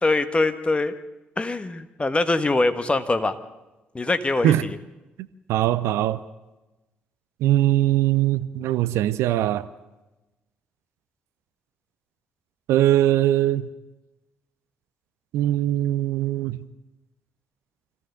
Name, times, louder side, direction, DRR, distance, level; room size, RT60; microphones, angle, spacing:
voice 1, 0.0-0.9 1.4-3.3 3.9-4.8, left 2 dB, 20° left, 10 dB, 1.5 m, -23 dB
voice 2, 5.5-6.2 7.4-9.7 12.7-13.6 15.3-16.6, right 13 dB, 60° right, 14 dB, 0.7 m, -21 dB
25.5 x 15.5 x 6.8 m, 1.0 s
figure-of-eight pair, 45°, 5 cm